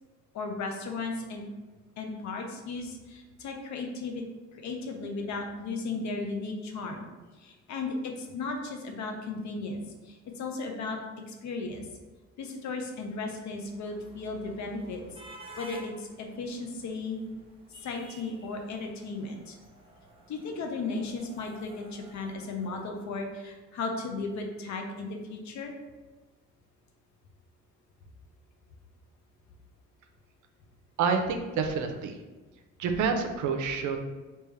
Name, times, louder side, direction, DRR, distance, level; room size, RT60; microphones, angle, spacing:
voice 1, 0.3-1.4 2.0-4.2 4.5-7.1 7.4-9.8 10.0-11.0 11.3-11.9 12.4-15.0 15.6-17.2 17.8-19.6 20.3-25.7, left 3 dB, 70° left, 3 dB, 0.7 m, -35 dB
sound 1, 13.1-23.4, right 1 dB, 20° right, 0.7 m, -52 dB
voice 2, 31.0-32.2 32.8-34.0, right 5 dB, 75° right, 6 dB, 0.6 m, -28 dB
3.4 x 2.9 x 3.3 m, 1.2 s
cardioid pair, 90°, 30 cm